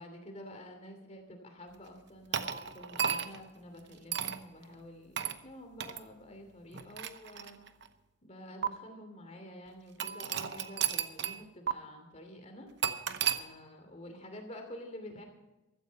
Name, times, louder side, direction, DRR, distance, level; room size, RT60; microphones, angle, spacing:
voice 1, 0.0-7.6 8.2-15.2, left 1 dB, 30° left, 5 dB, 2.8 m, -49 dB
sound 1, 2.3-3.5 4.1-4.4 5.2-5.4 5.8-6.0 6.7-7.9 8.6-8.7 10.0-11.4 11.7-11.8 12.8-13.4, right 8 dB, 55° right, 0.8 m, -33 dB
15.5 x 14.0 x 4.2 m, 1.0 s
head